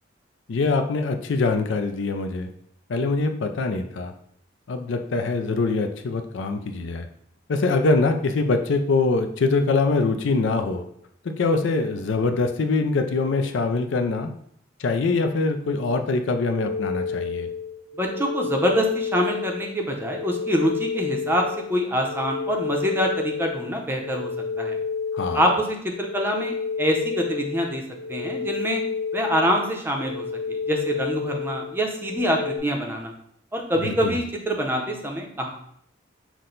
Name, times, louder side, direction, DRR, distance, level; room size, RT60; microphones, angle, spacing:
voice 1, 0.5-2.5 2.9-4.1 4.7-7.1 7.5-10.8 11.2-14.3 14.8-17.5 25.1-25.5 33.8-34.2, left 3 dB, 70° left, 7 dB, 0.4 m, -23 dB
sound 1, 16.5-32.6, left 5 dB, 60° right, 0.9 m, -30 dB
voice 2, 18.0-24.3 24.6-24.8 25.3-27.8 28.1-28.8 29.1-33.1 33.5-35.5, equal, 10° right, 1 dB, 0.6 m, -25 dB
5.9 x 2.2 x 3.8 m, 0.68 s
head